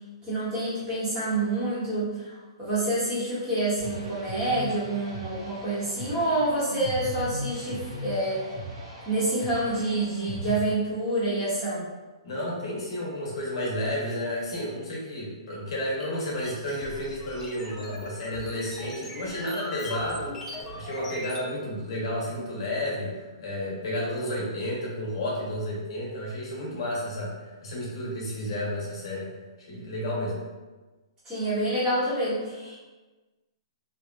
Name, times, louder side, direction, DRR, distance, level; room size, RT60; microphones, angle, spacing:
voice 1, 0.2-2.3 2.6-8.4 9.0-11.8 31.2-32.8, right 1 dB, 20° right, -10 dB, 1.1 m, -27 dB
sound 1, 3.8-10.6, equal, 55° right, 1.5 m, -38 dB
voice 2, 12.2-20.4 20.7-29.3 29.7-30.4, left 1 dB, 60° left, -4 dB, 0.9 m, -31 dB
sound 2, 16.0-21.5, left 1 dB, 10° left, 0.3 m, -40 dB
2.8 x 2.3 x 2.3 m, 1.2 s
hypercardioid pair, 155°, 3 cm